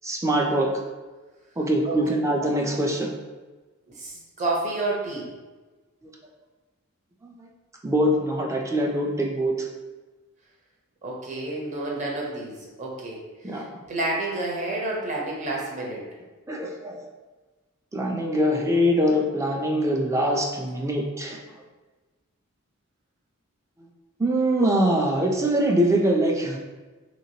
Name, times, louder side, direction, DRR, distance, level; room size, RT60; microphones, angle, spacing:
voice 1, 0.0-0.7 1.6-3.1 7.2-7.5 7.8-9.7 13.4-13.6 16.5-17.0 17.9-21.4 24.2-26.6, equal, 15° right, 0 dB, 0.4 m, -23 dB
voice 2, 4.0-5.3 11.0-13.2 13.4-16.0, right 2 dB, 35° right, -3 dB, 0.8 m, -30 dB
3.2 x 2.9 x 2.8 m, 1.2 s
head